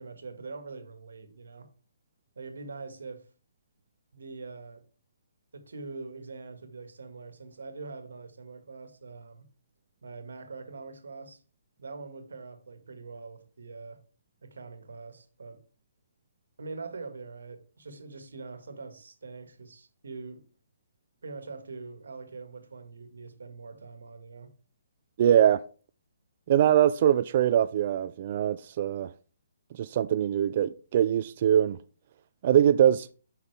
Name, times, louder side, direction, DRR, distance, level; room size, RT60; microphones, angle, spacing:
voice 1, 0.0-1.7 2.3-3.3 4.1-4.8 5.5-9.5 10.0-11.4 11.8-14.0 14.4-15.6 16.6-20.4 21.2-24.5, right 4 dB, 85° right, 1.6 m, -43 dB
voice 2, 25.2-25.6 26.5-29.1 29.8-31.8 32.4-33.1, right 10 dB, 45° right, 0.4 m, -22 dB
8.0 x 5.7 x 3.3 m
hypercardioid pair, 155°, 0 cm